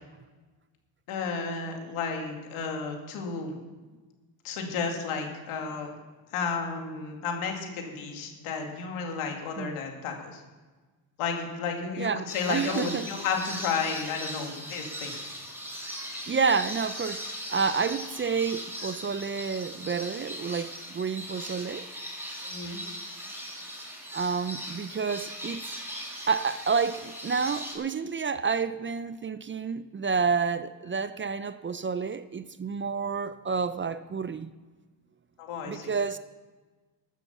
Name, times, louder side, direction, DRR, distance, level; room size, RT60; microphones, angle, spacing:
voice 1, 1.1-3.6 4.4-5.9 6.3-10.4 11.2-15.2 22.4-22.8 35.4-35.9, left 5 dB, 90° left, 2.6 m, -32 dB
voice 2, 12.0-13.1 16.3-21.9 24.1-25.7 26.1-34.5 35.7-36.2, right 5 dB, 25° right, 0.5 m, -29 dB
sound 1, 12.3-27.8, equal, 5° right, 3.9 m, -39 dB
13.5 x 8.2 x 7.1 m
cardioid pair, 95°, 49 cm